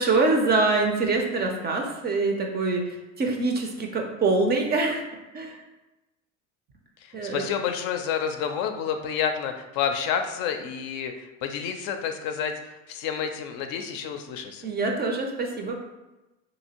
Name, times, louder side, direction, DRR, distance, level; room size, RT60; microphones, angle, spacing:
voice 1, 0.0-2.8 3.2-5.0 5.3-5.6 7.1-7.5 14.6-15.8, right 3 dB, 25° right, 3 dB, 0.4 m, -24 dB
voice 2, 7.0-14.7, left 7 dB, 65° left, 6 dB, 0.5 m, -29 dB
2.8 x 2.6 x 2.9 m, 1.0 s
supercardioid pair, 95°, 38 cm